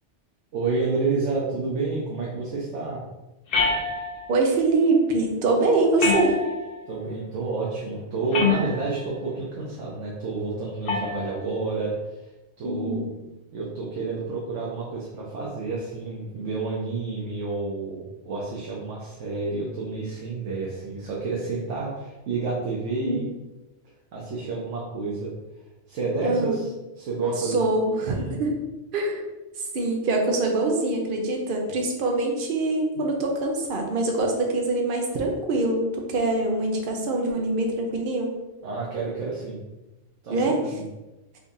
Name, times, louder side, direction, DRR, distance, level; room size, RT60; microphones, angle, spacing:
voice 1, 0.5-3.0 6.9-12.3 12.6-13.0 13.5-23.3 24.1-25.3 25.9-26.7 27.0-27.6 28.1-28.4 38.6-39.6 40.2-40.9, right 3 dB, 85° right, -5 dB, 1.1 m, -29 dB
sound 1, 3.5-4.4 6.0-6.8 8.3-9.0 10.9-11.3, left 4 dB, 55° left, 0.8 m, -25 dB
voice 2, 4.3-6.3 12.6-13.0 23.0-23.2 26.2-26.6 27.4-28.5 28.9-29.2 29.7-38.3 40.3-40.6, right 2 dB, 55° right, 1 dB, 0.8 m, -24 dB
3.8 x 2.6 x 3.5 m, 1.0 s
omnidirectional pair, 1.2 m